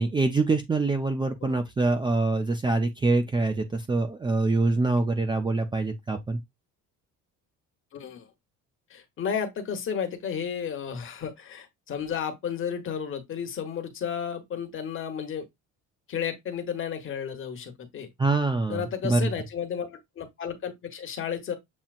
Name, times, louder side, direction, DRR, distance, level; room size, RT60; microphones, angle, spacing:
voice 1, 0.0-6.4 18.2-19.3, right 3 dB, 15° right, 0.4 m, -25 dB
voice 2, 7.9-8.3 8.9-15.5 16.1-18.1 18.7-21.6, left 7 dB, 40° left, 1.1 m, -33 dB
7.3 x 2.8 x 2.4 m
cardioid pair, 145°, 32 cm